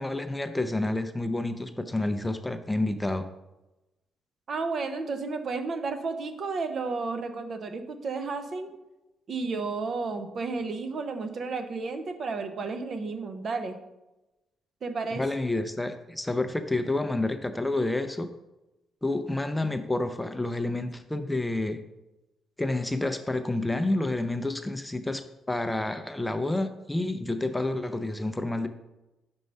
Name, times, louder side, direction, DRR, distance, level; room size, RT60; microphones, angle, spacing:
voice 1, 0.0-3.3 15.1-18.3 19.0-21.8 22.6-28.7, left 2 dB, 10° left, 9 dB, 0.4 m, -29 dB
voice 2, 4.5-8.7 9.3-13.8 14.8-15.2, right 4 dB, 50° right, 8 dB, 0.7 m, -32 dB
5.4 x 4.5 x 5.4 m, 0.99 s
cardioid pair, 90°, 0 cm